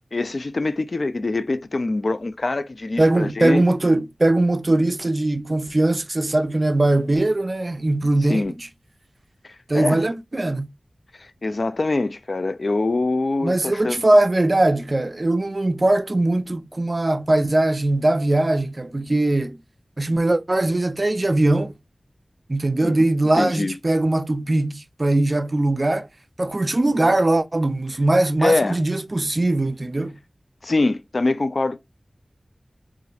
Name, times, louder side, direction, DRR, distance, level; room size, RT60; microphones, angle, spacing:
voice 1, 0.1-3.8 8.2-8.5 9.4-10.0 11.2-14.0 22.8-23.0 23.3-23.7 28.4-28.8 30.6-31.8, left 2 dB, 60° left, 0.4 m, -24 dB
voice 2, 3.0-8.7 9.7-10.7 13.4-19.6 20.0-21.7 22.5-26.1 26.4-30.2, right 2 dB, 45° right, 0.4 m, -20 dB
4.1 x 2.5 x 2.4 m
wide cardioid pair, 50°, 0 cm